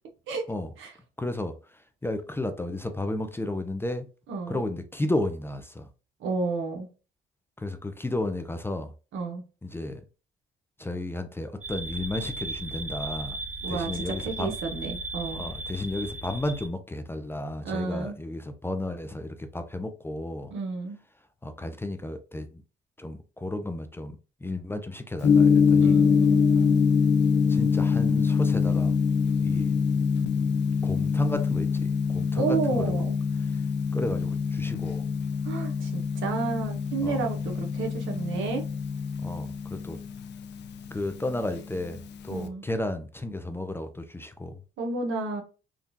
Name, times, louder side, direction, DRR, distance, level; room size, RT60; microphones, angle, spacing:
voice 1, 1.2-4.1 4.5-5.9 7.6-8.9 9.6-10.0 10.8-13.4 13.7-14.6 15.3-20.5 21.4-22.6 23.0-26.0 27.5-29.0 29.4-29.7 30.8-33.0 33.4-33.6 33.9-35.2 37.0-37.2 39.2-40.0 40.9-44.6, left 1 dB, 10° left, 0.4 m, -33 dB
voice 2, 4.3-4.6 6.2-6.9 9.1-9.4 13.6-15.5 17.6-18.2 20.5-21.0 25.8-26.9 32.4-33.2 35.4-38.6 42.3-42.6 44.8-45.4, right 4 dB, 80° right, 1.0 m, -31 dB
sound 1, 11.6-16.7, right 2 dB, 40° right, 1.3 m, -36 dB
Gong, 25.2-42.5, left 6 dB, 60° left, 0.5 m, -25 dB
3.6 x 2.3 x 2.7 m
cardioid pair, 90°, 20 cm